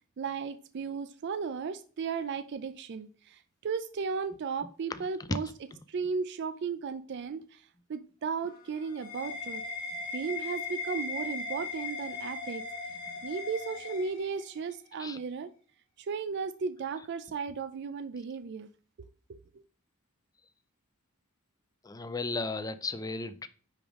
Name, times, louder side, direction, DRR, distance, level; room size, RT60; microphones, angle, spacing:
voice 1, 0.2-5.5 5.9-7.6 7.9-9.6 10.1-12.6 13.2-15.5 16.0-18.7 19.3-19.4, right 5 dB, 50° right, 0.4 m, -35 dB
sound 1, 8.3-14.7, left 4 dB, 60° left, 2.8 m, -38 dB
voice 2, 21.8-23.5, left 3 dB, 15° left, 0.4 m, -34 dB
9.8 x 3.5 x 3.6 m
head